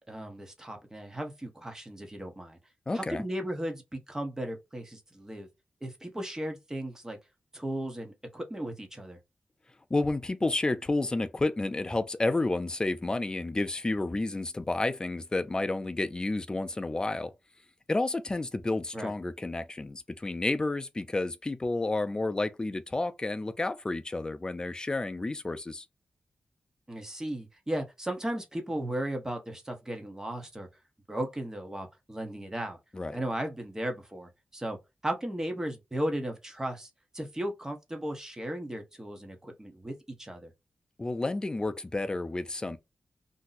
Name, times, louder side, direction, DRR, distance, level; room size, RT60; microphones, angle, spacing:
voice 1, 0.1-2.6 2.9-5.5 5.8-7.2 7.5-9.2 18.9-19.1 26.9-30.7 31.1-32.8 33.1-34.8 35.0-40.5, right 1 dB, 15° right, 1.0 m, -36 dB
voice 2, 2.9-3.2 9.9-17.3 17.9-25.9 32.9-33.2 41.0-42.8, left 2 dB, 25° left, 0.4 m, -30 dB
2.7 x 2.2 x 4.0 m
wide cardioid pair, 85°, 3 cm